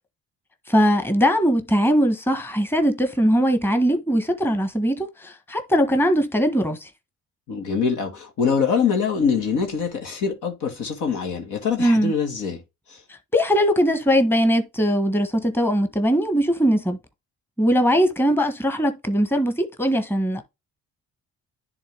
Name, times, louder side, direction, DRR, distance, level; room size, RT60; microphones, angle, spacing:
voice 1, 0.7-6.9 11.8-12.1 13.3-17.0 17.6-20.4, equal, 5° left, 1.2 m, -20 dB
voice 2, 7.5-12.6 12.9-13.0, left 6 dB, 85° left, 2.0 m, -24 dB
10.5 x 3.7 x 3.4 m
cardioid pair, 90°, 30 cm